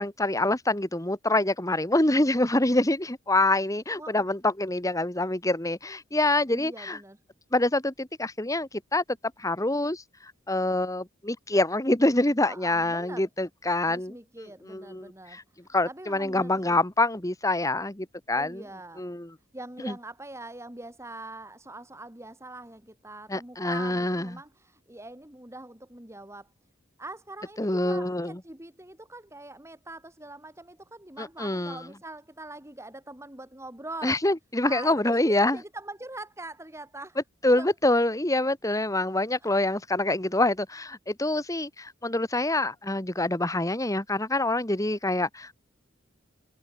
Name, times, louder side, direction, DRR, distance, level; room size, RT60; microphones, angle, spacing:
voice 1, 0.0-7.0 7.5-9.0 9.4-10.0 10.5-14.1 14.7-15.4 15.7-18.6 19.0-19.3 19.8-20.0 23.3-24.4 27.6-28.4 31.2-31.8 34.0-35.6 37.4-45.5, left 2 dB, 15° left, 1.9 m, -26 dB
voice 2, 6.5-7.2 12.4-13.3 13.8-16.8 18.3-19.0 19.5-26.5 27.0-34.2 34.6-37.2 37.5-37.7, right 2 dB, 15° right, 3.1 m, -43 dB
head